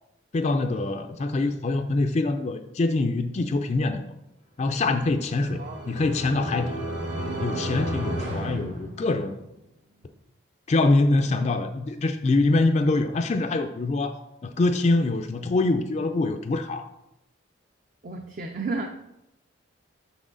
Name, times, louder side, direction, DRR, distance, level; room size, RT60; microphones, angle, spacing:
voice 1, 0.3-4.0 4.6-5.6 5.9-6.8 7.4-9.4 10.7-16.9, left 2 dB, 35° left, 7 dB, 0.4 m, -24 dB
sound 1, 5.0-9.5, right 1 dB, 85° right, 2.5 m, -33 dB
voice 2, 5.5-5.9 8.5-8.9 18.0-18.9, right 3 dB, 45° right, 4 dB, 0.5 m, -33 dB
6.2 x 5.6 x 3.8 m, 0.87 s
head